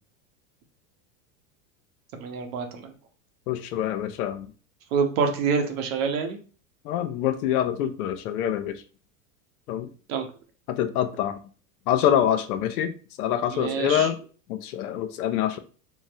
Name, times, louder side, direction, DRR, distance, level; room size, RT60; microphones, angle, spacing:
voice 1, 2.1-2.9 4.9-6.4 10.1-10.3 13.5-14.1, right 5 dB, 65° right, 5 dB, 0.9 m, -26 dB
voice 2, 3.5-4.5 6.8-8.8 9.7-9.9 10.7-11.4 11.9-14.2 14.5-15.6, left 10 dB, 80° left, 10 dB, 0.6 m, -25 dB
3.8 x 2.1 x 2.6 m, 0.38 s
supercardioid pair, 120°, 43 cm